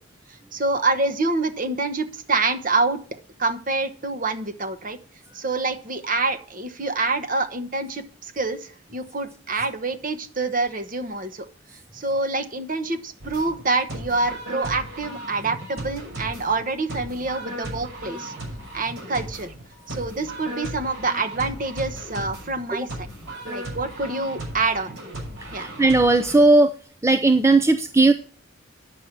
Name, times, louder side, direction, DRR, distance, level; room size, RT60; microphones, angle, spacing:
voice 1, 0.5-3.0 3.4-5.0 5.3-11.5 11.9-18.3 18.7-19.5 19.9-22.9 23.4-25.0 25.5-25.7, right 3 dB, 40° right, 10 dB, 1.1 m, -26 dB
sound 1, 13.2-26.4, right 1 dB, 85° right, 6.6 m, -36 dB
voice 2, 25.5-26.7 27.0-28.1, right 2 dB, 15° right, 8 dB, 0.5 m, -17 dB
9.9 x 6.7 x 6.0 m, 0.42 s
head